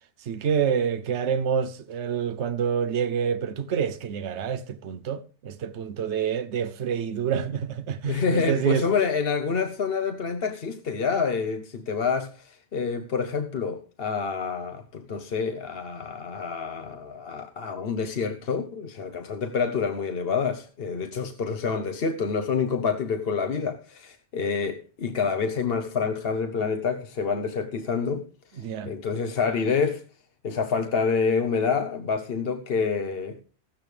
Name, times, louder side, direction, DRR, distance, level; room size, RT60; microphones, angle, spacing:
voice 1, 0.2-8.9 28.6-29.0, right 7 dB, 75° right, 1.1 m, -27 dB
voice 2, 8.0-28.2 28.5-30.0 30.4-33.4, left 5 dB, 55° left, 1.1 m, -27 dB
15.5 x 13.0 x 3.3 m
omnidirectional pair, 1.2 m